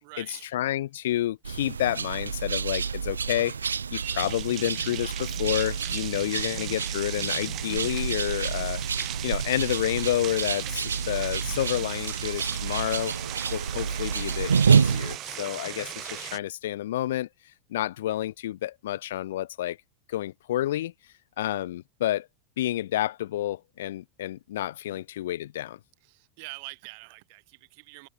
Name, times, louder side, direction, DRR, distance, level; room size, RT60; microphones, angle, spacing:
voice 1, 0.0-0.5 24.9-25.0 26.0-28.1, right 30 dB, 60° right, 3.4 m, -45 dB
voice 2, 0.5-3.6 3.9-8.8 9.2-13.2 13.5-17.3 17.7-19.8 20.1-20.9 21.4-22.3 22.6-25.8, left 13 dB, 70° left, 0.7 m, -29 dB
sound 1, 1.4-15.2, right 6 dB, 90° right, 0.4 m, -28 dB
sound 2, 4.0-16.4, right 14 dB, 45° right, 3.5 m, -38 dB
hypercardioid pair, 90°, 0 cm